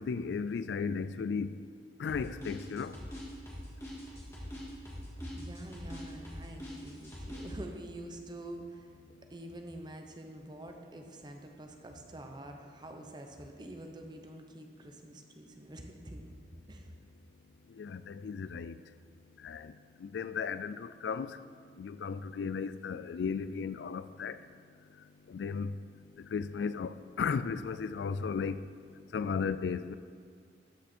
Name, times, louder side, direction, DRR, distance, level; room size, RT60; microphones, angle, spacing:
voice 1, 0.0-1.6 2.0-3.0 17.8-18.7 19.4-19.7 20.0-21.4 21.8-24.4 25.3-25.7 26.2-28.6 29.1-30.0, left 5 dB, 80° left, 0.3 m, -35 dB
sound 1, 2.1-7.5, equal, 15° left, 2.2 m, -43 dB
voice 2, 5.2-8.9 9.3-16.3 16.7-16.9, right 1 dB, 25° right, 0.8 m, -46 dB
13.0 x 5.9 x 4.4 m
head